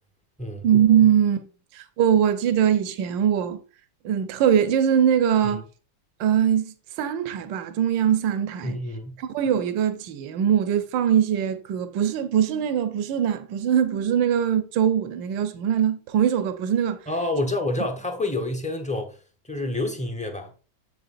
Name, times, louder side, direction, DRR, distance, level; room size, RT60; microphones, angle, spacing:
voice 1, 0.6-1.5 1.7-3.6 4.0-5.6 6.2-8.8 9.2-17.0, right 9 dB, 80° right, 1.4 m, -22 dB
voice 2, 8.6-9.2 17.1-19.2 19.4-20.5, left 2 dB, 5° left, 0.5 m, -28 dB
7.9 x 7.4 x 2.5 m
omnidirectional pair, 2.0 m